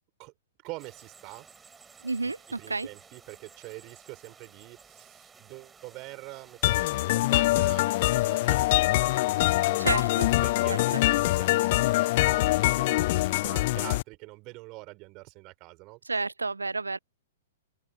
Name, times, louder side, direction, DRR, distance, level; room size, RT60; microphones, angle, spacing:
voice 1, 0.6-1.5 2.2-9.1 9.7-10.0 10.4-16.0, right 24 dB, 35° right, 4.5 m, -45 dB
sound 1, 0.8-13.3, right 6 dB, 15° right, 4.5 m, -55 dB
voice 2, 2.0-2.9 9.8-10.3 10.7-11.0 16.0-17.0, right 3 dB, 85° right, 0.5 m, -30 dB
sound 2, 6.6-14.0, left 18 dB, 45° left, 0.4 m, -24 dB
open air
figure-of-eight pair, 110°, 0 cm